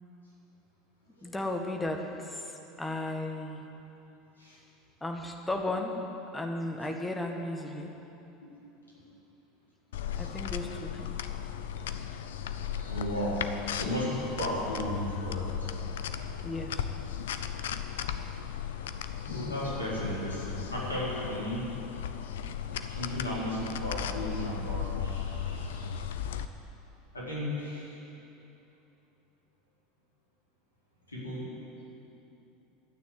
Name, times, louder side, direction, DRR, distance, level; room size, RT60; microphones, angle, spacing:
voice 1, 1.2-3.7 5.0-6.0 6.3-7.9 10.2-11.2 16.4-16.9, left 2 dB, 10° left, 2 dB, 1.8 m, -35 dB
sound 1, 9.9-26.4, left 8 dB, 70° left, 0.6 m, -36 dB
voice 2, 12.6-15.7 19.2-21.7 22.8-26.0 27.1-28.0 31.1-31.5, equal, 85° left, -7 dB, 4.3 m, -35 dB
12.5 x 9.3 x 9.5 m, 2.9 s
figure-of-eight pair, 75°, 0 cm